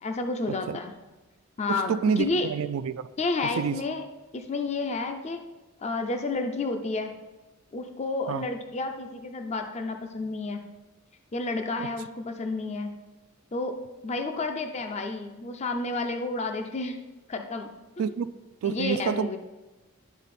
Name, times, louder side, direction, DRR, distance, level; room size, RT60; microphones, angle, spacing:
voice 1, 0.0-0.9 1.6-2.5 3.2-4.0 4.3-5.4 5.8-7.1 7.7-10.6 11.3-12.9 13.5-13.7 14.0-17.0 17.3-18.1 18.6-19.4, left 3 dB, 30° left, 6 dB, 0.5 m, -31 dB
voice 2, 1.7-3.1 3.6-3.8 8.3-8.4 11.8-11.9 18.0-18.3 18.6-19.4, right 7 dB, 80° right, 15 dB, 0.3 m, -28 dB
11.0 x 4.0 x 4.2 m, 1.1 s
head